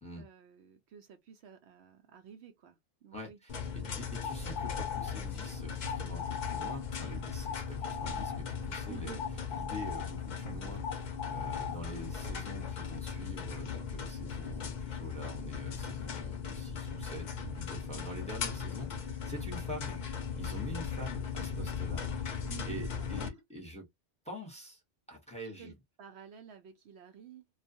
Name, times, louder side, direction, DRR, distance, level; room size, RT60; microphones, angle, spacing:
voice 1, 0.1-3.9 8.9-9.2 22.5-23.3 25.6-27.5, right 8 dB, 70° right, 0.8 m, -52 dB
voice 2, 3.1-9.2 9.5-20.0 20.4-23.9 24.2-24.8 25.1-25.7, equal, 5° left, 0.8 m, -45 dB
sound 1, 3.5-23.3, left 6 dB, 50° left, 0.6 m, -38 dB
sound 2, 4.1-12.9, left 7 dB, 75° left, 0.9 m, -41 dB
2.3 x 2.3 x 2.6 m
omnidirectional pair, 1.2 m